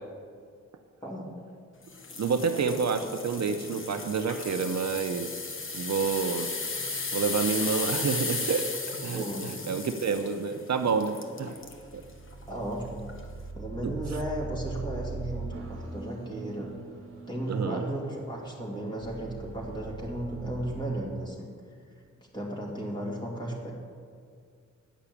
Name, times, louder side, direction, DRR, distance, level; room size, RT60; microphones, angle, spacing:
sound 1, 1.9-11.8 12.3-12.5 13.1-13.2, left 3 dB, 45° left, 1.1 m, -35 dB
voice 1, 2.2-5.3 5.7-6.5 7.1-8.6 9.0-11.6 13.8-13.9 17.5-17.8, right 5 dB, 60° right, 7 dB, 0.6 m, -28 dB
voice 2, 9.1-9.5 11.4-11.5 12.5-13.1 13.5-16.7 17.3-21.5 22.3-23.7, right 1 dB, 15° left, -4 dB, 2.6 m, -34 dB
sound 2, 11.4-20.8, right 4 dB, 45° right, 1.4 m, -41 dB
10.0 x 5.9 x 8.4 m, 2.2 s
wide cardioid pair, 120°, 30 cm